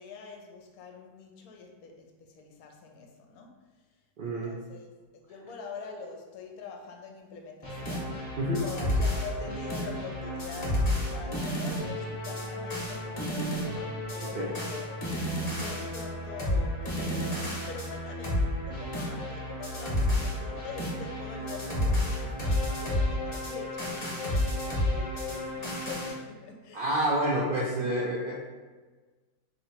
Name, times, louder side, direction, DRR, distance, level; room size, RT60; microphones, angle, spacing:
voice 1, 0.0-3.6 4.2-8.2 8.6-15.0 15.4-26.9 27.8-27.9, left 5 dB, 70° left, 2 dB, 1.1 m, -44 dB
voice 2, 4.2-4.5 8.4-8.6 14.2-14.5 26.7-28.4, right 1 dB, 75° right, -4 dB, 0.4 m, -28 dB
sound 1, 7.6-26.1, left 1 dB, 30° left, 0.9 m, -31 dB
3.0 x 2.8 x 4.3 m, 1.3 s
omnidirectional pair, 1.7 m